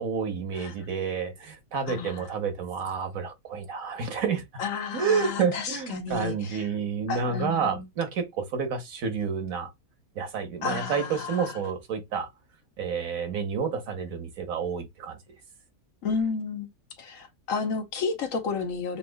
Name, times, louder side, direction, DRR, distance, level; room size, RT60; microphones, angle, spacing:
voice 1, 0.0-4.4 4.9-9.7 10.2-12.3 12.8-15.2, right 6 dB, 70° right, 1.3 m, -29 dB
voice 2, 1.9-2.3 4.6-6.7 7.1-7.8 10.6-11.6 16.0-16.7 17.0-19.0, left 5 dB, 65° left, 1.1 m, -32 dB
7.0 x 2.7 x 2.2 m
omnidirectional pair, 1.6 m